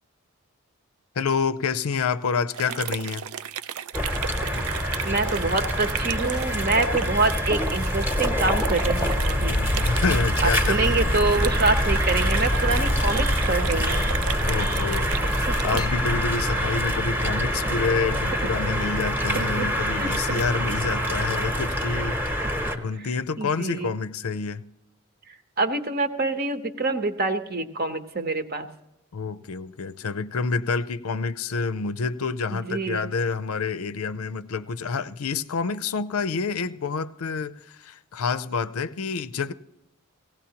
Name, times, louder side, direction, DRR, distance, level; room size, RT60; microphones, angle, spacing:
voice 1, 1.2-3.3 9.5-11.1 14.5-15.3 15.6-22.4 22.7-24.6 29.1-39.5, left 5 dB, 85° left, 0.5 m, -28 dB
sound 1, 2.5-15.9, right 9 dB, 85° right, 0.4 m, -35 dB
sound 2, 3.9-22.8, equal, 10° right, 0.9 m, -25 dB
voice 2, 5.0-9.6 10.4-14.0 15.2-15.6 19.3-20.4 23.0-23.1 23.4-23.9 25.3-28.7 32.5-33.1, right 3 dB, 45° right, 0.9 m, -26 dB
sound 3, 10.4-15.9, left 1 dB, 20° left, 0.7 m, -41 dB
18.0 x 16.5 x 2.9 m
head